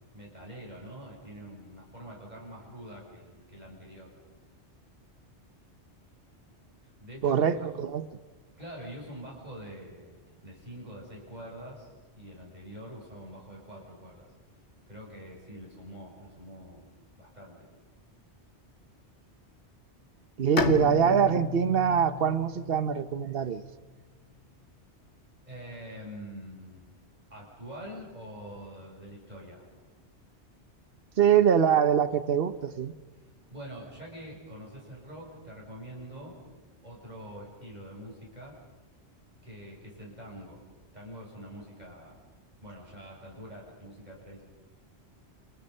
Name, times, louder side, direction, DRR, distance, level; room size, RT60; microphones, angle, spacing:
voice 1, 0.1-4.1 7.0-7.5 8.6-14.3 14.9-16.9 17.2-17.7 25.5-26.9 27.3-29.7 33.5-36.4 36.8-38.6 39.4-40.6 40.9-42.2 42.6-44.4, equal, 40° right, -3 dB, 7.7 m, -45 dB
voice 2, 7.2-8.0 20.4-23.6 31.2-32.9, right 8 dB, 60° right, 12 dB, 1.2 m, -24 dB
Bowed string instrument, 20.6-24.2, left 4 dB, 75° left, 1.5 m, -34 dB
29.0 x 29.0 x 5.6 m, 1.3 s
omnidirectional pair, 1.1 m